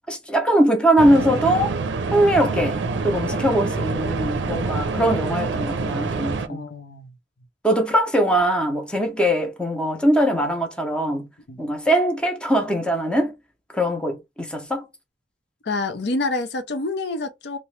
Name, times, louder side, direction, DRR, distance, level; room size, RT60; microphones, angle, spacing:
voice 1, 0.1-1.7 2.1-2.8 3.0-6.6 7.6-11.3 11.6-13.3 13.7-14.9, right 1 dB, 5° left, 0.6 m, -21 dB
sound 1, 1.0-6.5, right 4 dB, 90° right, 0.5 m, -26 dB
voice 2, 3.2-3.7 6.5-7.2 11.5-11.6 15.6-17.6, left 2 dB, 65° left, 0.6 m, -28 dB
2.8 x 2.1 x 3.1 m
head